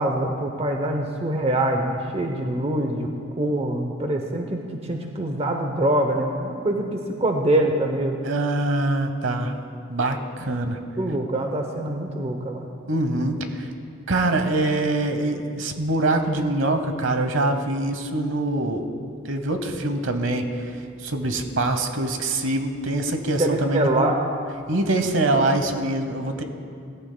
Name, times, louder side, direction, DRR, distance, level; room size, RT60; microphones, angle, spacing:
voice 1, 0.0-3.1 3.4-8.2 11.0-12.7 23.4-24.2, right 1 dB, 30° right, 3 dB, 0.7 m, -24 dB
voice 2, 8.2-9.5 9.9-10.8 12.9-13.7 14.1-18.9 19.2-24.1 24.7-26.4, right 2 dB, 65° right, 7 dB, 0.9 m, -24 dB
17.0 x 14.5 x 2.2 m, 2.3 s
head